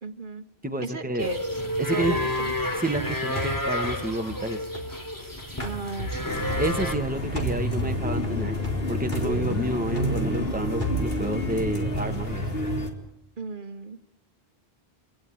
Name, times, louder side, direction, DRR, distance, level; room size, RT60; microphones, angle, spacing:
voice 1, 0.0-0.4 0.8-1.6 1.9-2.7 5.6-6.6 13.4-14.0, right 4 dB, 55° right, 8 dB, 1.3 m, -36 dB
voice 2, 0.6-1.3 1.8-2.2 2.8-4.6 6.6-8.6 8.9-12.4, right 1 dB, 10° right, 5 dB, 1.6 m, -29 dB
sound 1, 1.2-7.0, left 1 dB, 20° left, 2.8 m, -30 dB
sound 2, 2.0-5.2 5.6-7.1 7.3-11.5, equal, 50° left, 4.3 m, -34 dB
sound 3, 6.3-12.9, equal, 65° left, 3.6 m, -29 dB
26.5 x 17.5 x 9.4 m, 0.77 s
omnidirectional pair, 1.1 m